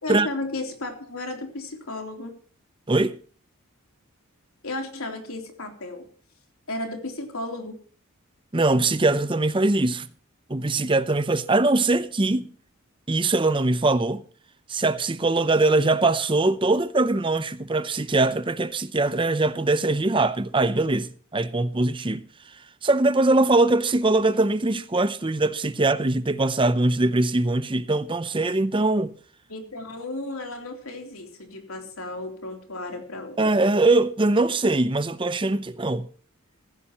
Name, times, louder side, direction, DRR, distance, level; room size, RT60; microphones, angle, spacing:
voice 1, 0.0-2.3 4.6-6.1 6.7-7.8 29.5-33.4, left 2 dB, 85° left, 3.4 m, -34 dB
voice 2, 8.5-10.1 10.5-12.5 13.1-14.2 14.7-22.2 22.8-29.1 33.4-36.1, right 2 dB, 25° right, 0.7 m, -22 dB
15.5 x 15.5 x 3.0 m
head